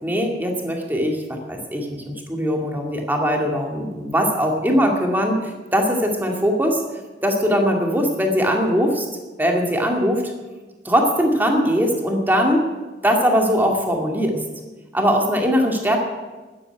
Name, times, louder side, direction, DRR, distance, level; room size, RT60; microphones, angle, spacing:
voice 1, 0.0-5.4 5.7-6.8 7.2-9.0 9.4-10.2 10.8-12.7 13.0-14.4 14.9-16.0, equal, 10° right, 1 dB, 2.2 m, -20 dB
12.5 x 9.7 x 9.9 m, 1.2 s
head